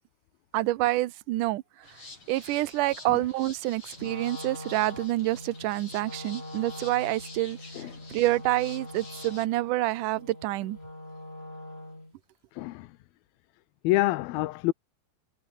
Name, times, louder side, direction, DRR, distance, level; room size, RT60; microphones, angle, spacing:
voice 1, 0.5-1.6 2.3-7.6 8.1-10.8, right 17 dB, 75° right, 2.1 m, -27 dB
sound 1, 1.8-9.5, left 3 dB, 35° left, 7.8 m, -48 dB
Wind instrument woodwind instrument, 3.9-12.2, left 1 dB, 15° left, 7.4 m, -43 dB
voice 2, 12.6-12.9 13.8-14.7, left 18 dB, 80° left, 2.6 m, -26 dB
omnidirectional pair, 4.4 m